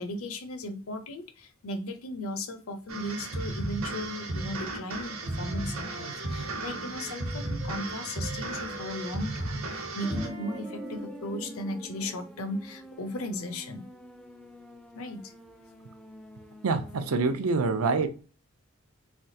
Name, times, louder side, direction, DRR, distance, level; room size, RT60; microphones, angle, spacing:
voice 1, 0.0-13.9 14.9-15.3, left 1 dB, 70° left, 0.7 m, -36 dB
sound 1, 2.9-10.3, right 2 dB, 65° right, 1.0 m, -34 dB
Wind instrument woodwind instrument, 4.3-7.9 8.2-12.2, right 3 dB, 45° right, 0.7 m, -47 dB
sound 2, 10.0-17.3, equal, 5° left, 0.3 m, -45 dB
voice 2, 16.6-18.1, right 4 dB, 80° right, 0.5 m, -26 dB
3.4 x 3.2 x 2.7 m
head